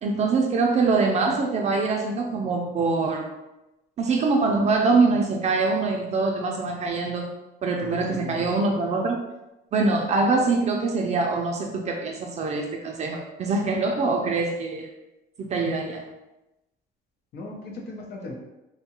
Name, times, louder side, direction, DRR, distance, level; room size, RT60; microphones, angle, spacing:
voice 1, 0.0-3.3 4.0-7.3 7.6-9.2 9.7-14.9 15.4-16.0, right 3 dB, 40° right, 1 dB, 0.4 m, -24 dB
voice 2, 7.8-8.5 17.3-18.3, left 2 dB, 65° left, 0 dB, 0.7 m, -37 dB
2.7 x 2.3 x 2.9 m, 0.95 s
cardioid pair, 110°, 17 cm